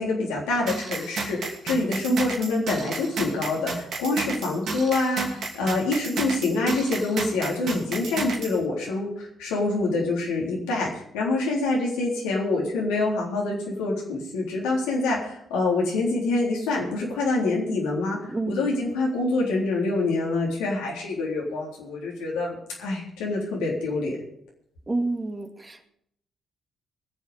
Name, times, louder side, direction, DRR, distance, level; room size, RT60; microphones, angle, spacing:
voice 1, 0.0-24.2, left 2 dB, 75° left, -2 dB, 3.6 m, -26 dB
sound 1, 0.7-8.6, right 4 dB, 60° right, 2.6 m, -32 dB
voice 2, 18.3-18.7 24.9-25.9, right 2 dB, 25° right, 4 dB, 2.3 m, -29 dB
21.5 x 7.3 x 5.1 m, 0.71 s
hypercardioid pair, 45°, 0 cm